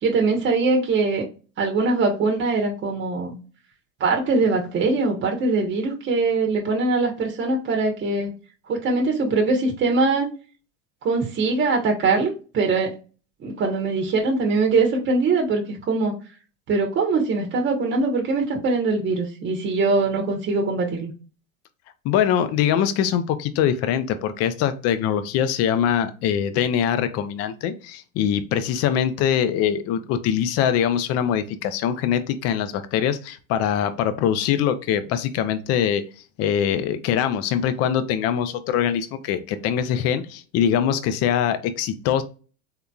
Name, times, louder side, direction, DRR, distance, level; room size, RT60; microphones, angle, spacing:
voice 1, 0.0-1.2 1.6-3.4 4.0-8.3 8.7-10.3 11.0-12.9 13.4-16.1 16.7-21.1, right 3 dB, 30° right, 2 dB, 0.9 m, -22 dB
voice 2, 22.0-36.0 36.4-42.2, left 9 dB, 40° left, 11 dB, 0.5 m, -23 dB
3.6 x 2.8 x 2.3 m, 0.35 s
hypercardioid pair, 105°, 39 cm